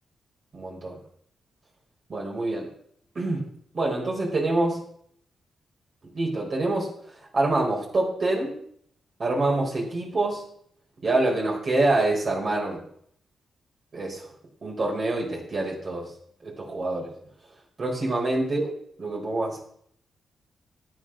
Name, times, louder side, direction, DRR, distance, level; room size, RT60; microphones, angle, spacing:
voice 1, 0.5-1.0 2.1-2.7 3.1-3.5 3.7-4.8 6.1-6.9 7.3-8.6 9.2-10.4 11.0-12.8 13.9-14.2 14.6-16.1 16.4-17.1 17.8-19.6, right 2 dB, 50° right, -2 dB, 4.5 m, -26 dB
12.5 x 9.1 x 6.3 m, 0.65 s
cardioid pair, 65°, 0 cm